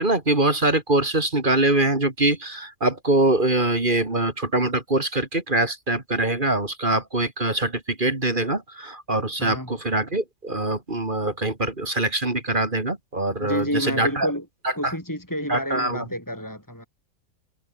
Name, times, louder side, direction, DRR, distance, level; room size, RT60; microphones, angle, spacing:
voice 1, 0.0-14.3 14.6-14.9 15.5-16.1, right 2 dB, 30° right, 2.8 m, -23 dB
voice 2, 9.4-9.7 13.4-14.4 14.8-16.9, equal, 10° left, 7.7 m, -29 dB
omnidirectional pair, 1.7 m